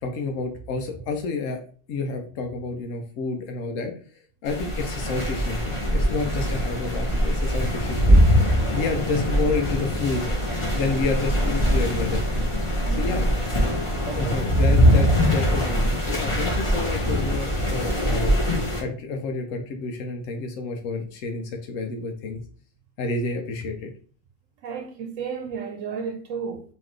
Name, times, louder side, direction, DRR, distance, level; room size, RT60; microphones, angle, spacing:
voice 1, 0.0-1.6 1.9-3.9 4.4-10.3 10.7-12.5 12.9-13.3 14.1-18.3 18.8-22.4 23.0-23.9, left 3 dB, 85° left, 1.1 m, -29 dB
sound 1, 4.5-18.8, equal, 25° left, 1.1 m, -22 dB
sound 2, 5.5-15.6, left 3 dB, 55° left, 0.8 m, -39 dB
voice 2, 12.9-13.2 13.6-14.4 24.6-26.6, right 6 dB, 85° right, 1.0 m, -34 dB
3.8 x 3.0 x 3.2 m
omnidirectional pair, 1.3 m